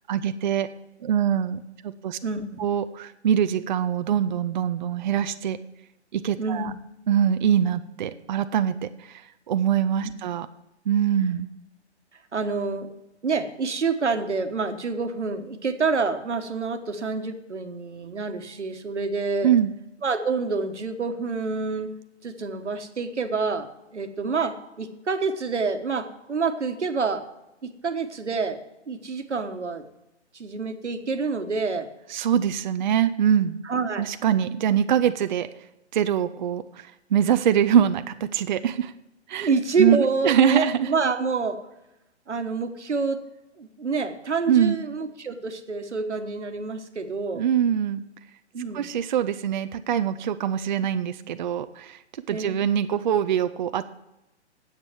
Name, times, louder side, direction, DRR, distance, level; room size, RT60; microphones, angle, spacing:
voice 1, 0.1-0.7 1.0-2.2 2.6-5.6 6.1-6.7 7.1-10.5 10.9-11.5 19.4-19.7 32.1-33.6 34.0-35.5 35.9-38.9 39.3-39.5 39.8-40.9 44.5-44.8 47.3-48.0 48.7-52.0 52.3-53.8, right 9 dB, 40° right, 11 dB, 0.5 m, -23 dB
voice 2, 2.2-2.6 6.4-6.7 12.3-12.9 13.2-19.5 20.0-21.9 22.2-27.2 27.6-28.6 28.9-29.8 30.3-31.9 33.6-34.1 39.4-41.6 42.3-43.2 43.6-47.4 48.5-48.9 52.3-52.6, right 4 dB, 75° right, 8 dB, 1.4 m, -27 dB
9.7 x 8.1 x 7.4 m, 0.91 s
figure-of-eight pair, 130°, 35 cm